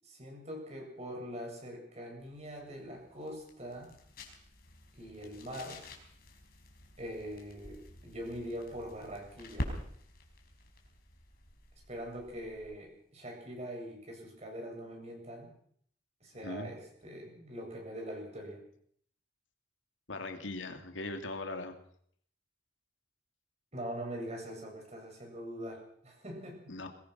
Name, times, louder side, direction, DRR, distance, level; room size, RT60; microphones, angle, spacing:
voice 1, 0.0-3.9 5.0-5.8 7.0-9.7 11.9-15.5 16.2-18.6 23.7-26.6, equal, 35° right, 1 dB, 8.0 m, -43 dB
sound 1, 2.2-12.9, left 1 dB, 50° left, 4.9 m, -47 dB
voice 2, 16.4-16.7 20.1-21.8 26.7-26.9, left 2 dB, 85° left, 5 dB, 2.8 m, -39 dB
23.5 x 20.0 x 6.2 m, 0.64 s
head